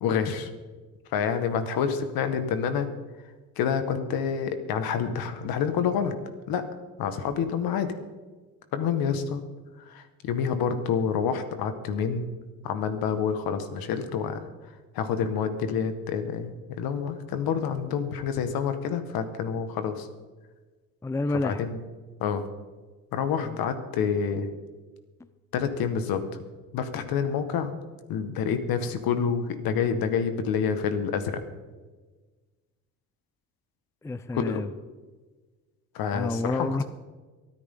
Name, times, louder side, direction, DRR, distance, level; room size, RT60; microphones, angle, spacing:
voice 1, 0.0-0.5 1.1-2.9 3.6-6.1 6.5-6.7 7.0-7.9 8.7-9.4 9.9-12.3 12.6-14.4 15.0-20.1 21.4-21.8 22.2-22.5 23.1-24.5 25.5-26.2 26.7-27.7 28.1-31.4 34.3-34.6 36.0-36.8, left 7 dB, 75° left, 9 dB, 1.7 m, -28 dB
voice 2, 21.0-21.6 23.4-23.6 34.0-34.7 36.1-36.8, left 2 dB, 10° left, 15 dB, 0.5 m, -29 dB
24.5 x 9.7 x 3.9 m, 1.3 s
cardioid pair, 95°, 37 cm